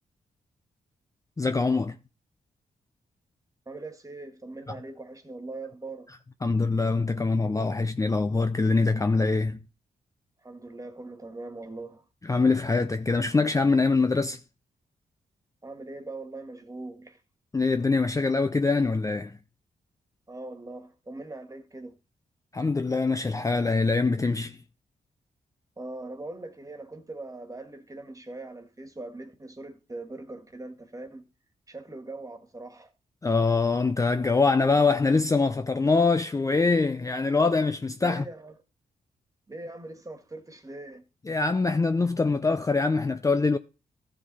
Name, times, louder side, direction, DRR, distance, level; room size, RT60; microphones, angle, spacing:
voice 1, 1.4-2.0 6.4-9.6 12.2-14.4 17.5-19.4 22.5-24.6 33.2-38.2 41.3-43.6, left 3 dB, 20° left, 0.5 m, -24 dB
voice 2, 3.7-6.1 10.4-12.1 15.6-17.2 20.3-22.0 25.8-31.2 31.7-32.9 38.0-38.6 39.5-41.0, right 2 dB, 20° right, 1.8 m, -41 dB
14.0 x 5.1 x 4.2 m
cardioid pair, 70°, 15 cm